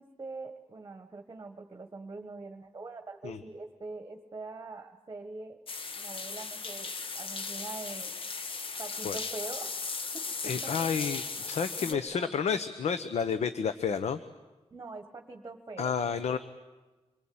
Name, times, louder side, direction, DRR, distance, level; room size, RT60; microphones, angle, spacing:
voice 1, 0.0-5.6 6.0-8.1 8.8-9.7 10.1-11.0 11.8-12.3 14.7-15.9, right 3 dB, 25° right, 5 dB, 1.5 m, -43 dB
sound 1, 5.7-11.9, left 4 dB, 50° left, 1.4 m, -37 dB
voice 2, 10.4-14.2 15.8-16.4, left 6 dB, 80° left, 11 dB, 0.9 m, -30 dB
26.5 x 23.0 x 8.8 m, 1.2 s
wide cardioid pair, 175°, 11 cm